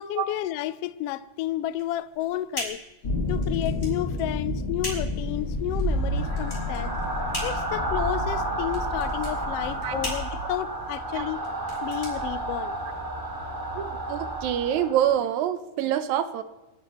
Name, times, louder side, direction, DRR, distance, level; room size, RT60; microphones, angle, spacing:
voice 1, 0.0-2.8 3.3-6.9 7.4-11.4 11.8-12.8, left 13 dB, 80° left, 1.4 m, -31 dB
sound 1, 1.7-13.0, left 1 dB, 20° left, 4.6 m, -40 dB
sound 2, 3.0-10.1, left 2 dB, 35° left, 2.5 m, -31 dB
sound 3, 5.2-15.2, right 2 dB, 10° right, 1.2 m, -31 dB
voice 2, 13.8-16.4, right 10 dB, 80° right, 2.2 m, -26 dB
29.5 x 10.5 x 3.0 m
omnidirectional pair, 3.3 m